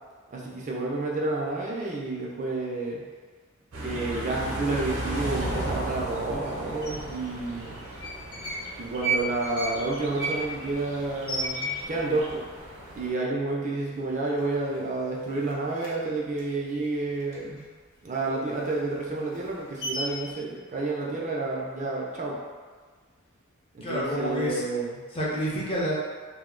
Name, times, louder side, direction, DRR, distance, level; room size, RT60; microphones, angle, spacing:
voice 1, 0.3-3.0 3.8-7.8 8.8-12.4 12.9-17.7 18.0-22.4 23.7-25.0, right 3 dB, 35° right, -3 dB, 0.4 m, -30 dB
sound 1, 3.7-13.1, right 1 dB, 75° right, 0.7 m, -36 dB
sound 2, 6.8-6.9 7.8-8.6 8.9-12.2 12.5-12.6 12.8-13.4 13.8-13.9 14.2-15.0 15.3-17.7 18.0-20.3, right 2 dB, 65° left, 0.7 m, -33 dB
voice 2, 23.8-24.6 25.1-26.0, equal, 25° left, -6 dB, 0.6 m, -28 dB
2.6 x 2.1 x 3.7 m, 1.5 s
head